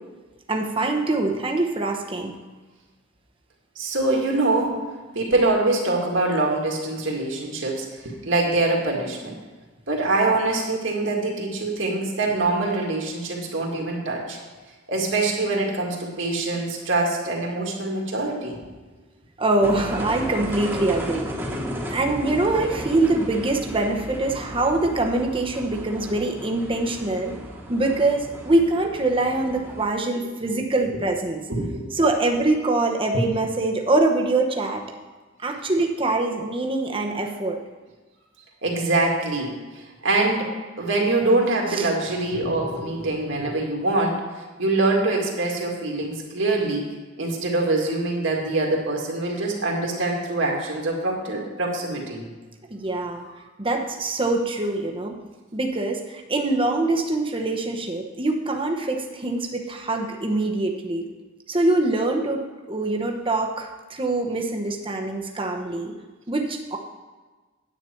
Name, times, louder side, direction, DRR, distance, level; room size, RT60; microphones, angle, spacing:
voice 1, 0.5-2.3 19.4-21.3 21.9-27.4 27.7-31.4 31.9-34.8 35.4-37.6 41.7-41.9 52.7-53.2 53.6-55.1 55.5-61.1 61.5-65.9 66.3-66.8, right 2 dB, 25° right, 2 dB, 1.0 m, -24 dB
voice 2, 3.8-4.8 5.1-9.3 9.9-14.4 14.9-18.6 21.5-21.7 31.5-31.9 38.6-39.5 40.0-44.2 44.6-46.9 47.2-52.2, right 2 dB, 65° right, -1 dB, 2.2 m, -24 dB
sound 1, 19.6-29.9, equal, 10° right, 1.4 m, -34 dB
9.9 x 8.6 x 4.5 m, 1.3 s
head